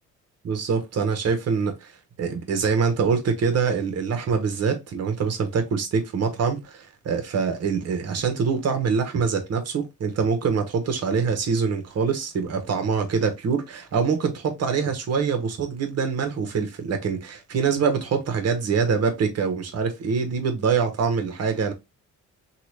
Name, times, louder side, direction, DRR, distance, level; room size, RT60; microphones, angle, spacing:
voice 1, 0.4-1.9 2.2-21.7, right 5 dB, 55° right, 1.1 m, -24 dB
2.8 x 2.4 x 3.1 m
cardioid pair, 90°, 30 cm